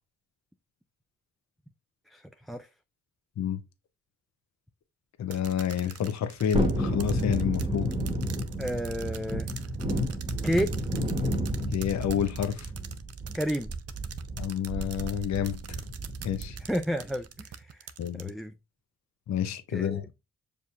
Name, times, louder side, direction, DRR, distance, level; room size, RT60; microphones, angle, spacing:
voice 1, 2.1-2.7 8.6-9.5 10.4-10.7 13.3-13.7 16.6-17.9 18.1-18.5 19.7-20.0, equal, ahead, 0.3 m, -31 dB
voice 2, 5.2-7.9 11.7-12.7 14.4-15.8 16.2-16.6 18.0-18.3 19.3-20.1, left 9 dB, 60° left, 0.7 m, -29 dB
sound 1, 5.3-18.3, right 8 dB, 50° right, 0.6 m, -44 dB
Thunderstorm, 6.5-16.8 17.1-17.2, right 1 dB, 15° right, 1.0 m, -31 dB
6.5 x 2.7 x 2.3 m
supercardioid pair, 45°, 32 cm